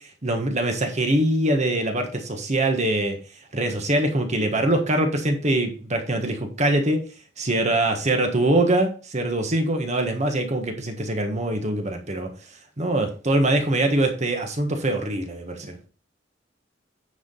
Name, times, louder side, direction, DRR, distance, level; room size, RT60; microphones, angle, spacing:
voice 1, 0.2-3.2 3.5-7.0 7.4-12.3 12.8-15.8, right 1 dB, 40° right, 5 dB, 1.4 m, -23 dB
9.9 x 5.0 x 4.0 m, 0.37 s
head